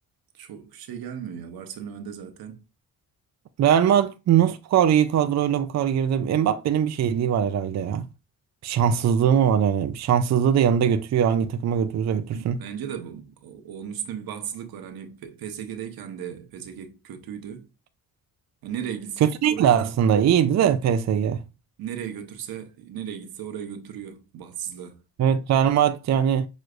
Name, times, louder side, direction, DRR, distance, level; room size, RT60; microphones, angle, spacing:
voice 1, 0.3-2.6 12.3-17.7 18.6-19.8 21.8-25.0, right 9 dB, 90° right, 1.1 m, -36 dB
voice 2, 3.6-8.1 8.6-12.6 19.2-21.4 25.2-26.5, right 9 dB, 50° right, 0.5 m, -21 dB
6.3 x 3.1 x 2.4 m
cardioid pair, 120°, 35 cm